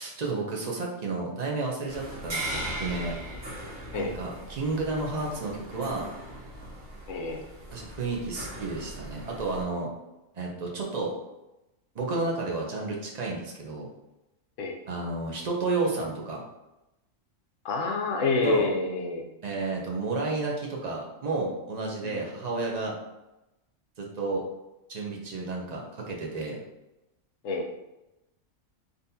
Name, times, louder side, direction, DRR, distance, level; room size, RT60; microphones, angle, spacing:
voice 1, 0.0-3.2 3.9-6.1 7.7-9.9 10.3-11.1 11.9-13.9 14.9-16.4 18.4-18.7 19.4-23.0 24.0-24.4 24.9-26.6, right 3 dB, 45° right, -1 dB, 0.5 m, -31 dB
sound 1, 1.9-9.6, right 1 dB, 70° right, 1.4 m, -39 dB
voice 2, 7.1-7.4 14.6-14.8 17.6-19.3 22.0-22.2 27.4-27.7, left 3 dB, 75° left, 2 dB, 0.9 m, -28 dB
3.8 x 2.7 x 2.7 m, 0.96 s
omnidirectional pair, 1.3 m